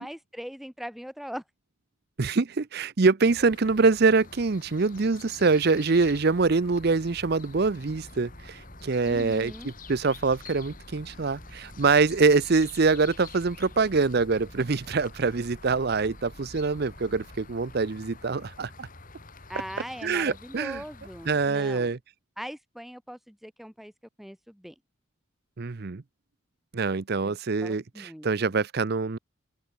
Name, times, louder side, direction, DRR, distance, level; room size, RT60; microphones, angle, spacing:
voice 1, 0.0-1.4 9.0-9.7 19.5-21.9 22.4-23.9 24.2-24.7 27.2-28.3, equal, ahead, 0.4 m, -40 dB
voice 2, 2.2-18.9 20.0-20.8 21.3-22.0 25.6-26.0 26.7-29.2, right 4 dB, 50° right, 0.6 m, -24 dB
sound 1, 3.2-21.5, left 4 dB, 40° left, 2.7 m, -48 dB
sound 2, 6.0-19.3, equal, 20° right, 1.6 m, -50 dB
open air
head